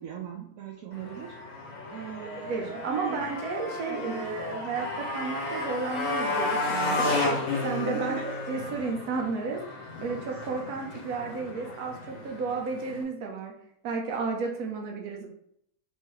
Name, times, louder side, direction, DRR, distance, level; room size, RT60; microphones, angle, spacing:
voice 1, 0.0-1.4 1.9-3.3 3.9-4.3 7.5-7.6 7.9-8.3, right 7 dB, 70° right, 1 dB, 1.0 m, -39 dB
Motorcycle, 0.9-13.0, left 2 dB, 65° left, 1.6 m, -33 dB
voice 2, 2.4-7.3 7.6-13.5 13.8-15.3, right 4 dB, 85° right, 1 dB, 1.3 m, -33 dB
4.1 x 3.7 x 3.0 m, 0.71 s
omnidirectional pair, 1.6 m